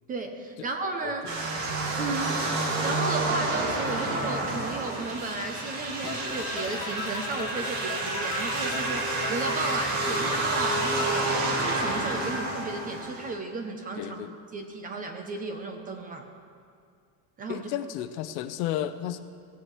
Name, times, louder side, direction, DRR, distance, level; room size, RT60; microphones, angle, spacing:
voice 1, 0.1-1.3 2.0-2.4 2.8-14.2 14.5-16.3 17.4-17.7, right 3 dB, 20° right, 5 dB, 0.4 m, -34 dB
sound 1, 1.3-13.4, right 2 dB, 85° right, 2.2 m, -29 dB
sound 2, 6.1-12.4, left 8 dB, 90° left, 1.3 m, -39 dB
voice 2, 14.0-14.4 17.5-19.2, left 12 dB, 70° left, 11 dB, 0.7 m, -32 dB
18.0 x 9.5 x 3.1 m, 2.2 s
cardioid pair, 170°, 44 cm